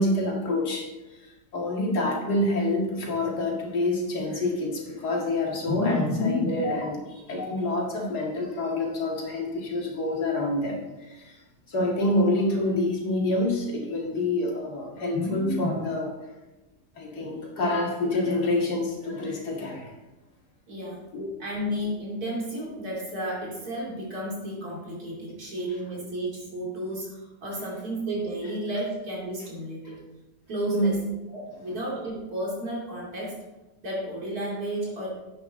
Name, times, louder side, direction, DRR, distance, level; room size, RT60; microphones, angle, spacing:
voice 1, 0.0-11.4 11.7-16.1 17.0-19.9 21.1-21.3 30.7-30.9, left 2 dB, 75° left, -1 dB, 2.5 m, -27 dB
voice 2, 20.7-21.1 21.4-30.0 30.5-31.0 31.3-33.4 33.8-35.1, right 1 dB, 65° right, -4 dB, 3.4 m, -32 dB
11.0 x 8.3 x 3.7 m, 1.1 s
omnidirectional pair, 1.7 m